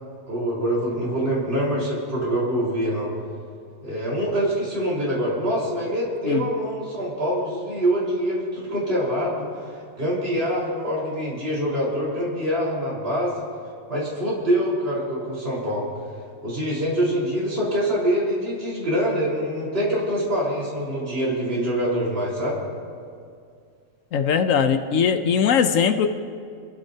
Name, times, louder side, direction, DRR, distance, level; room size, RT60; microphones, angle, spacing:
voice 1, 0.3-3.1 3.8-9.5 10.0-13.4 13.9-15.9 16.4-22.6, equal, 50° right, -6 dB, 4.6 m, -25 dB
voice 2, 24.1-26.1, left 7 dB, 80° left, 8 dB, 1.1 m, -20 dB
27.0 x 15.5 x 2.8 m, 2.3 s
omnidirectional pair, 1.3 m